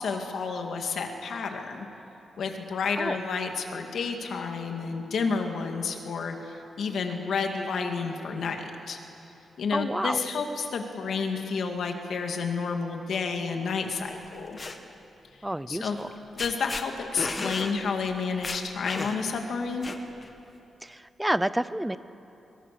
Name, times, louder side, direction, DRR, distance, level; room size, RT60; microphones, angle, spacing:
voice 1, 0.0-1.9 2.4-9.0 9.6-14.6 15.7-16.0 16.4-19.9, left 5 dB, 70° left, 4 dB, 2.3 m, -30 dB
voice 2, 9.7-10.2 15.4-16.1 20.8-22.0, right 1 dB, 5° right, 15 dB, 0.6 m, -29 dB
sound 1, 14.2-14.8 16.0-16.1 16.4-16.8 17.2-17.7 18.1-18.2 18.4-19.3 19.8-20.3, left 3 dB, 30° left, 1.5 m, -34 dB
24.5 x 23.0 x 6.9 m, 2.9 s
wide cardioid pair, 145°, 0 cm